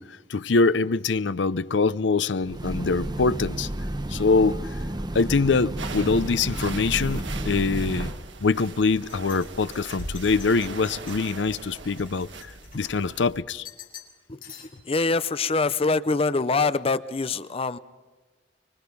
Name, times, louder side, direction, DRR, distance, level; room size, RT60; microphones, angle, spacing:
voice 1, 0.0-3.7 4.1-4.8 5.1-8.1 8.4-12.3 12.7-13.7, left 4 dB, 75° left, 0.6 m, -24 dB
Train, 2.4-8.1, right 1 dB, 25° right, 0.9 m, -31 dB
sound 1, 2.6-6.6 6.9-7.5 8.0-8.1 8.9-13.3 13.6-14.2 14.4-15.0, left 9 dB, 55° left, 3.8 m, -50 dB
sound 2, 5.8-13.4, right 3 dB, 85° right, 1.7 m, -39 dB
voice 2, 14.8-17.8, left 3 dB, 30° left, 0.7 m, -24 dB
25.0 x 23.0 x 5.4 m
head